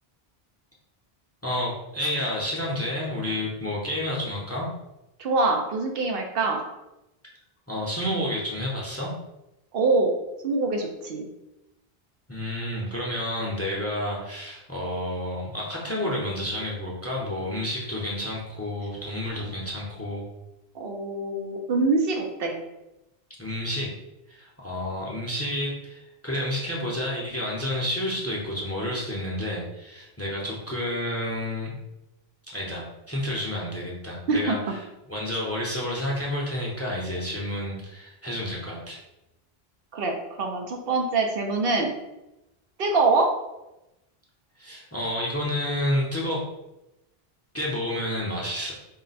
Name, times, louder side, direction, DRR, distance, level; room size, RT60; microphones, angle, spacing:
voice 1, 1.4-4.7 7.7-9.1 12.3-20.2 23.4-23.9 24.3-31.8 32.5-34.6 35.1-39.0 44.6-46.4 47.5-48.7, left 1 dB, 15° left, -3 dB, 0.6 m, -30 dB
voice 2, 5.2-6.6 9.7-10.1 10.4-11.3 19.4-19.5 20.7-22.6 34.3-34.6 39.9-41.9 42.8-43.3, right 3 dB, 70° right, 2 dB, 0.8 m, -24 dB
3.8 x 2.1 x 4.0 m, 0.93 s
omnidirectional pair, 1.0 m